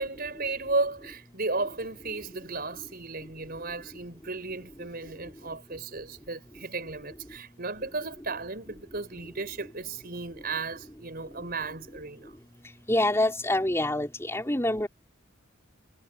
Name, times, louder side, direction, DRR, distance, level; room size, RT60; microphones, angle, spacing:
voice 1, 0.0-12.3, right 3 dB, 45° right, 5.3 m, -34 dB
voice 2, 12.9-14.9, left 1 dB, 10° left, 4.2 m, -26 dB
head